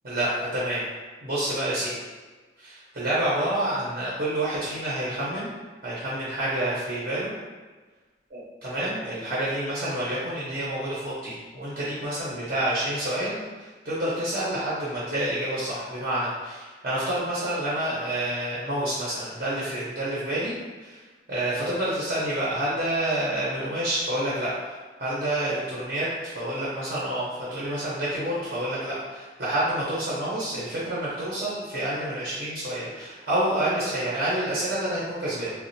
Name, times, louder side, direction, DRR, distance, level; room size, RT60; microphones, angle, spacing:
voice 1, 0.0-0.8 1.2-1.9 2.6-5.5 5.8-7.3 8.3-20.5 20.8-21.0 21.3-24.7 25.0-35.5, right 1 dB, 55° right, -9 dB, 0.8 m, -28 dB
3.2 x 2.3 x 2.7 m, 1.3 s
head